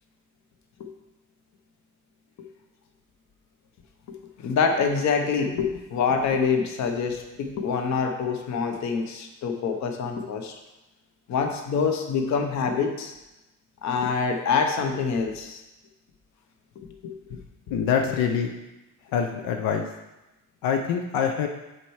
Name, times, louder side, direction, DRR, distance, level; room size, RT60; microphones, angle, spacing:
voice 1, 4.1-10.5 11.3-13.1 13.8-15.6 16.9-17.4 17.7-17.8 18.0-18.1, left 5 dB, 55° left, 5 dB, 0.9 m, -26 dB
voice 2, 17.7-18.5 19.1-19.8 20.6-21.5, left 7 dB, 80° left, 4 dB, 0.7 m, -25 dB
7.5 x 4.5 x 4.8 m, 0.99 s
cardioid pair, 155°, 34 cm